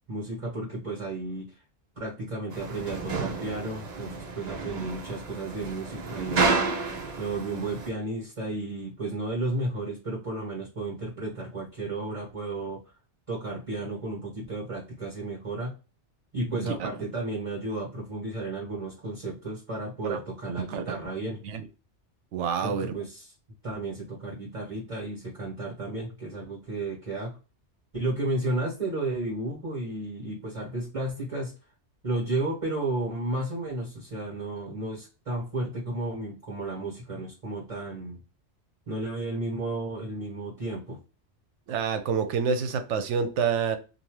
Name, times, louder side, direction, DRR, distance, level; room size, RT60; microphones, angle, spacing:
voice 1, 0.1-1.5 2.0-6.5 7.2-12.8 13.3-15.7 16.3-21.4 22.6-23.3 23.6-27.4 27.9-31.5 32.0-38.2 38.9-41.0, right 2 dB, 30° right, 1.4 m, -33 dB
sound 1, 2.5-7.9, right 4 dB, 45° right, 0.6 m, -31 dB
voice 2, 16.5-16.9 20.0-20.2 20.7-21.0 21.4-21.6 22.3-22.9 41.7-43.8, right 6 dB, 80° right, 0.9 m, -28 dB
2.6 x 2.4 x 3.1 m
omnidirectional pair, 1.2 m